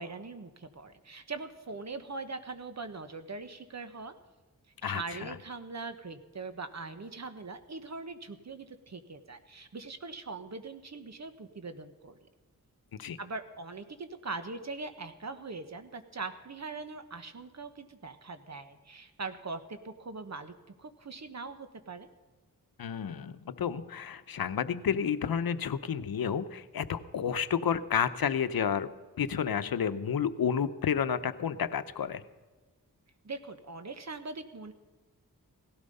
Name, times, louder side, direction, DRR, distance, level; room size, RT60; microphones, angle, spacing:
voice 1, 0.0-4.1 4.8-12.2 13.2-22.1 33.2-34.7, right 3 dB, 50° right, 9 dB, 1.4 m, -41 dB
voice 2, 4.8-5.3 13.0-13.2 22.8-28.9 29.2-32.2, left 7 dB, 85° left, 12 dB, 0.8 m, -31 dB
17.5 x 12.5 x 5.4 m, 1.3 s
wide cardioid pair, 70°, 35 cm